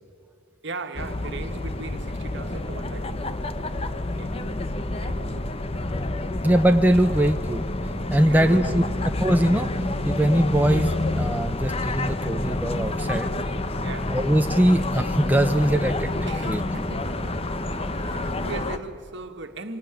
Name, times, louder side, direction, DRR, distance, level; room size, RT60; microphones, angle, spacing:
voice 1, 0.6-3.2 3.8-4.6 5.0-6.0 8.2-9.1 13.8-14.2 16.3-17.4 17.9-19.8, right 3 dB, 60° right, 1.7 m, -38 dB
sound 1, 0.9-18.8, left 2 dB, 30° left, 1.0 m, -28 dB
voice 2, 6.4-7.6 8.1-8.8 9.2-9.7 10.0-13.3 14.1-16.6, right 1 dB, 10° right, 0.7 m, -21 dB
27.0 x 21.5 x 9.1 m
head